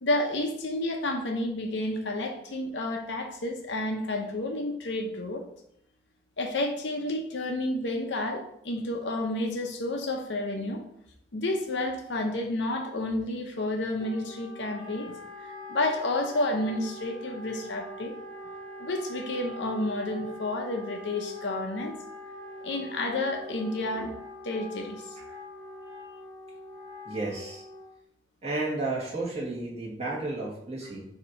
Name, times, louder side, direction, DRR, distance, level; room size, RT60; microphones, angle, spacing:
voice 1, 0.0-5.4 6.4-10.8 11.3-15.2 15.7-18.1 18.8-22.0 22.6-24.1 24.4-25.2, left 2 dB, 80° left, 2 dB, 0.8 m, -30 dB
Wind instrument woodwind instrument, 14.0-28.0, left 1 dB, ahead, 1.4 m, -43 dB
voice 2, 27.1-27.6 28.4-31.1, right 2 dB, 40° right, -5 dB, 2.1 m, -32 dB
7.1 x 2.9 x 5.2 m, 0.74 s
head